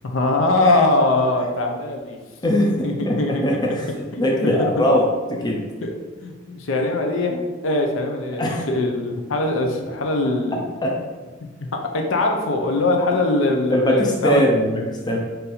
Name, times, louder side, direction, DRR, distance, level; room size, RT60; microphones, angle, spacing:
voice 1, 0.0-2.2 2.8-3.8 4.1-4.7 5.8-6.0 6.2-10.6 11.7-14.5, left 2 dB, 70° left, 3 dB, 0.5 m, -22 dB
voice 2, 3.0-3.9 4.2-5.6 8.4-8.6 10.8-11.0 13.7-15.2, equal, 20° left, -1 dB, 0.5 m, -20 dB
3.9 x 2.6 x 4.1 m, 1.3 s
head